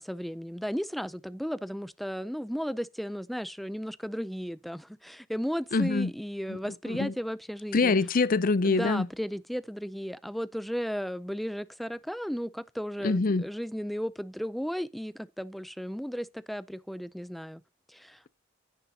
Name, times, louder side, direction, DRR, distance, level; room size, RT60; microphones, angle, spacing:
voice 1, 0.0-8.0 8.6-17.6 17.9-18.2, equal, ahead, 0.4 m, -35 dB
voice 2, 5.7-6.1 6.5-6.6 6.9-7.1 7.7-9.1 13.0-13.4, left 3 dB, 50° left, 0.6 m, -25 dB
10.5 x 9.3 x 2.8 m
head